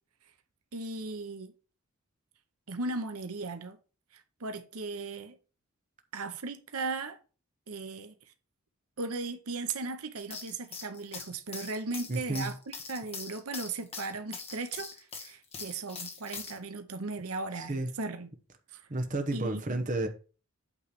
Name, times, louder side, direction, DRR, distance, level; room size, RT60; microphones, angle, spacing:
voice 1, 0.7-1.5 2.7-3.8 4.1-5.4 6.1-7.2 7.7-8.1 9.0-18.3 18.7-18.9 19.3-19.8, right 3 dB, 80° right, 0.9 m, -37 dB
sound 1, 10.2-16.6, left 5 dB, 25° left, 1.3 m, -42 dB
voice 2, 12.1-12.5 17.7-17.9 18.9-20.1, right 2 dB, 35° right, 1.0 m, -31 dB
8.5 x 3.3 x 6.6 m
head